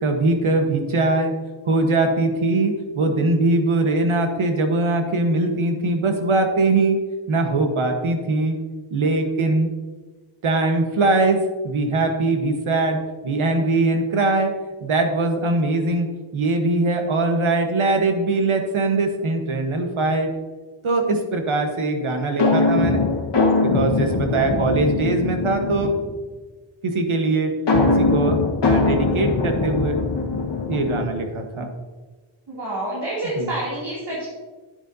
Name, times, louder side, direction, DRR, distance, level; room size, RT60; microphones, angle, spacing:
voice 1, 0.0-1.3 1.7-7.0 7.3-8.6 8.9-9.7 10.4-14.5 14.8-16.1 16.3-20.3 20.8-23.0 23.6-26.0 26.8-27.5 27.8-30.0 30.7-31.7 33.4-33.5, right 2 dB, 75° right, 4 dB, 1.4 m, -21 dB
sound 1, 22.4-26.1 27.7-31.3, left 3 dB, 55° left, 1.5 m, -21 dB
voice 2, 24.2-24.7 32.5-34.2, right 1 dB, 55° right, -8 dB, 2.9 m, -29 dB
10.5 x 9.6 x 2.8 m, 1.3 s
wide cardioid pair, 110°, 49 cm